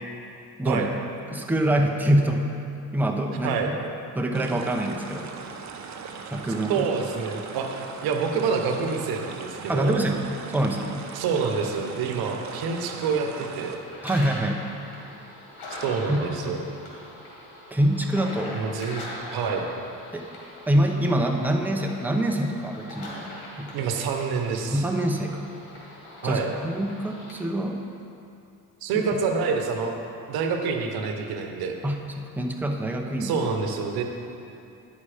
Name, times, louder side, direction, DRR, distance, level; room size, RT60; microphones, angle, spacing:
voice 1, 1.3-2.5 2.9-3.5 4.1-5.3 6.3-6.9 9.7-10.2 10.5-11.0 14.0-14.6 16.1-16.6 17.7-18.6 20.1-20.2 20.7-23.3 23.6-23.7 24.7-25.5 26.2-27.8 28.9-29.0 31.8-33.4, right 1 dB, 5° right, 2 dB, 0.8 m, -25 dB
sound 1, 4.3-13.8, right 5 dB, 50° right, 0.8 m, -39 dB
voice 2, 6.7-10.0 11.1-13.8 15.8-16.6 18.5-19.6 23.7-24.8 26.2-26.5 28.8-30.0 30.3-31.8 33.2-34.0, right 5 dB, 85° right, 4 dB, 0.9 m, -27 dB
sound 2, 13.5-27.3, left 1 dB, 90° left, 2.1 m, -42 dB
9.9 x 5.6 x 4.9 m, 2.7 s
cardioid pair, 85°, 36 cm